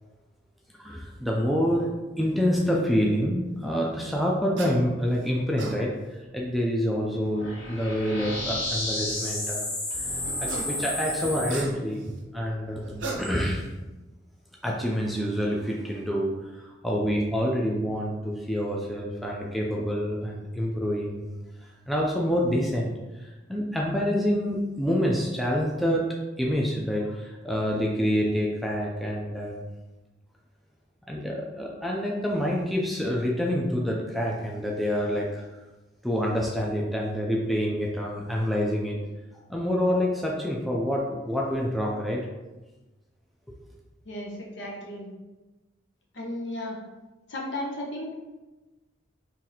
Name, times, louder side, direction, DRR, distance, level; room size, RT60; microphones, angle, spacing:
voice 1, 0.8-1.9 2.2-5.9 6.3-13.7 14.6-21.4 21.6-26.1 26.4-29.6 31.1-35.4 36.0-39.0 39.5-42.2, equal, ahead, -3 dB, 0.3 m, -27 dB
sound 1, 4.6-4.8 5.3-5.8 7.2-7.3 10.3-10.8 11.1-12.1 12.8-13.6, right 3 dB, 70° right, 0.5 m, -36 dB
sound 2, 7.3-11.6, left 1 dB, 85° left, 1.2 m, -31 dB
voice 2, 44.1-45.1 46.1-46.8 47.3-48.3, left 1 dB, 65° left, -2 dB, 0.8 m, -34 dB
2.8 x 2.6 x 3.9 m, 1.1 s
head